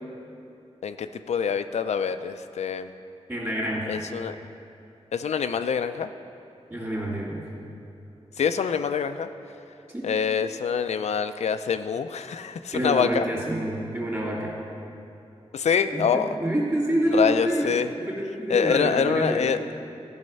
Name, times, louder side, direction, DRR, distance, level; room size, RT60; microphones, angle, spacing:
voice 1, 0.8-2.9 3.9-4.4 5.1-6.1 8.4-9.3 10.0-13.3 15.5-16.3 17.1-17.9 18.5-19.8, left 6 dB, 85° left, 9 dB, 0.4 m, -25 dB
voice 2, 3.3-4.0 6.7-7.4 9.9-10.1 12.7-14.6 15.9-19.4, right 1 dB, 25° right, -4 dB, 2.5 m, -27 dB
14.0 x 5.5 x 5.3 m, 2.9 s
wide cardioid pair, 105°, 11 cm